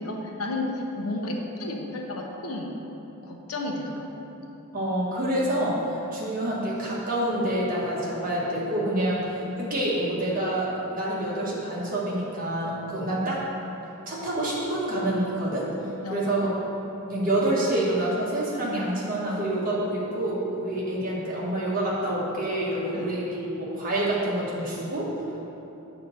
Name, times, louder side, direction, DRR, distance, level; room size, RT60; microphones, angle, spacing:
voice 1, 0.0-2.8 3.2-4.3 9.1-9.2 16.0-16.6 22.9-23.1, left 2 dB, 85° left, 1 dB, 0.8 m, -32 dB
voice 2, 4.7-9.2 9.6-13.4 14.1-15.7 16.1-16.5 17.1-25.1, right 1 dB, 40° right, -6 dB, 1.4 m, -27 dB
7.0 x 3.9 x 6.5 m, 3.0 s
head